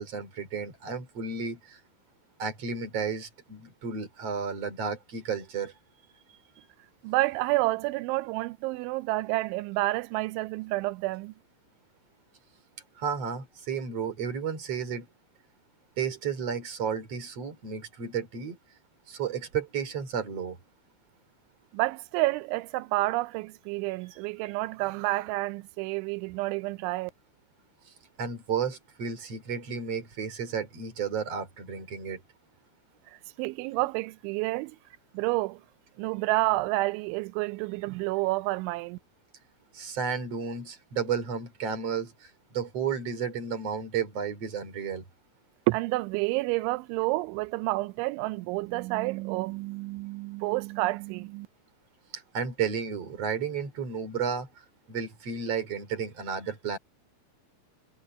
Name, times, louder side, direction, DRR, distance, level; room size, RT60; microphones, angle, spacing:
voice 1, 0.0-1.8 2.4-5.7 13.0-15.1 16.0-18.6 19.1-20.6 28.2-32.2 39.7-45.0 52.1-54.5 54.9-56.8, right 6 dB, 35° right, 4.3 m, -32 dB
voice 2, 7.0-11.3 21.7-27.1 33.4-34.7 35.1-35.6 36.0-39.0 45.7-51.5, right 20 dB, 90° right, 3.0 m, -29 dB
omnidirectional pair, 5.3 m